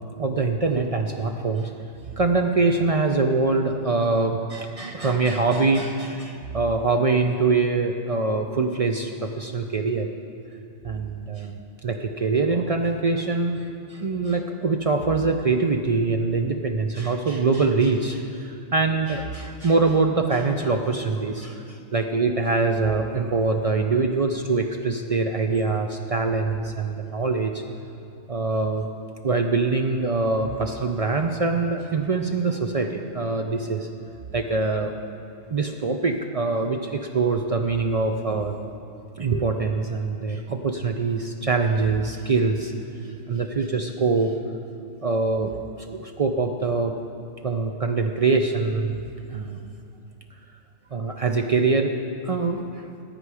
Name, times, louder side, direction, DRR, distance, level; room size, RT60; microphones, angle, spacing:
voice 1, 0.2-1.7 2.1-10.1 10.8-11.5 11.8-13.6 13.9-27.6 28.3-28.9 29.2-33.9 34.3-34.9 35.5-38.6 39.2-42.7 43.3-44.3 45.0-46.9 47.4-49.0 49.3-49.7 50.9-52.0 52.2-52.6, right 3 dB, 65° right, 4 dB, 0.3 m, -24 dB
15.0 x 9.0 x 4.8 m, 2.5 s
omnidirectional pair, 1.4 m